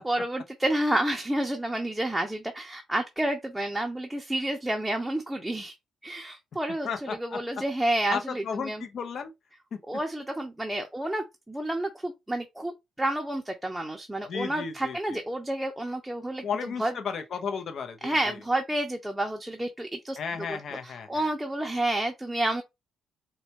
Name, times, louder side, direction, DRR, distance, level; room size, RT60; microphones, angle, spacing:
voice 1, 0.0-5.7 6.0-8.9 9.9-16.9 18.0-20.2 20.5-20.6 20.8-22.6, right 1 dB, 5° right, 0.7 m, -30 dB
voice 2, 6.8-7.4 8.1-9.3 9.7-9.8 14.3-15.2 16.4-18.4 20.2-21.3, left 6 dB, 60° left, 0.7 m, -34 dB
4.1 x 2.3 x 2.8 m
cardioid pair, 75°, 0 cm